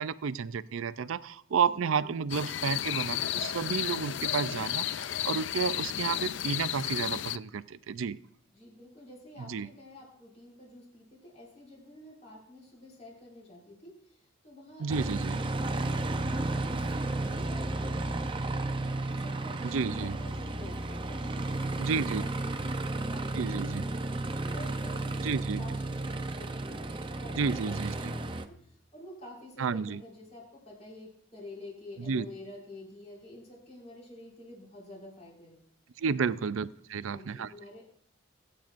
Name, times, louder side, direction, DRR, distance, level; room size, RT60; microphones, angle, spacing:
voice 1, 0.0-8.2 9.5-9.7 14.8-15.4 19.6-20.2 21.8-22.2 23.3-23.8 25.2-25.6 27.4-28.1 29.6-30.0 32.1-32.3 36.0-37.5, right 6 dB, 75° right, 16 dB, 0.4 m, -31 dB
voice 2, 1.6-2.2 8.5-35.6 35.9-36.0 36.3-36.4 37.0-37.8, left 1 dB, 35° left, -4 dB, 5.6 m, -49 dB
sound 1, 2.3-7.4, left 12 dB, 55° left, 0.3 m, -32 dB
Aircraft, 14.9-28.5, right 2 dB, 25° right, 0.6 m, -33 dB
23.0 x 8.9 x 2.5 m, 0.67 s
head